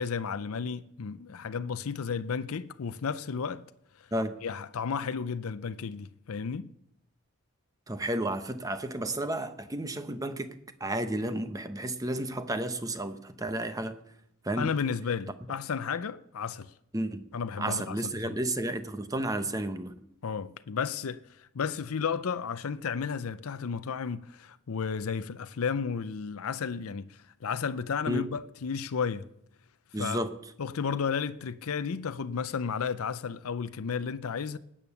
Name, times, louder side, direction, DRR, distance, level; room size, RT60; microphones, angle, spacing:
voice 1, 0.0-3.6 4.0-4.1 4.4-6.7 14.6-16.7 17.3-18.4 20.2-29.3 30.0-30.2 30.6-34.6, left 6 dB, 75° left, 0.5 m, -33 dB
voice 2, 4.1-4.4 7.9-10.5 10.8-14.0 14.4-14.7 16.9-17.3 17.6-19.9 28.1-28.2 29.9-30.3, right 1 dB, 15° right, 0.8 m, -32 dB
19.0 x 8.8 x 7.0 m
head